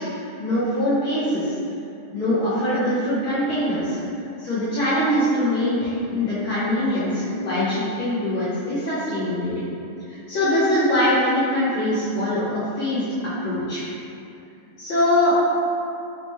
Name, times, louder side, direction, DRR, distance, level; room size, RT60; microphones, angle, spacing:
voice 1, 0.0-1.5 2.1-4.0 4.4-9.7 10.1-13.0 13.4-13.8 14.8-15.6, left 1 dB, 90° left, -13 dB, 1.1 m, -23 dB
5.7 x 2.2 x 3.0 m, 2.6 s
omnidirectional pair, 3.6 m